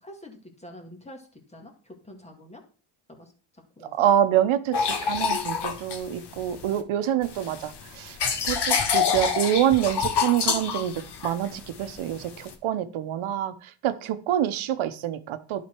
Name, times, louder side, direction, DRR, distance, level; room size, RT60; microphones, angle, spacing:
voice 1, 0.0-2.6 3.1-3.3 3.8-3.9, left 1 dB, 15° left, 3 dB, 2.0 m, -46 dB
voice 2, 3.9-8.2 8.4-15.7, right 11 dB, 80° right, 11 dB, 0.9 m, -26 dB
sound 1, 4.7-6.8 7.2-12.5, left 6 dB, 55° left, 1.4 m, -27 dB
11.5 x 4.3 x 4.5 m, 0.38 s
cardioid pair, 110°, 47 cm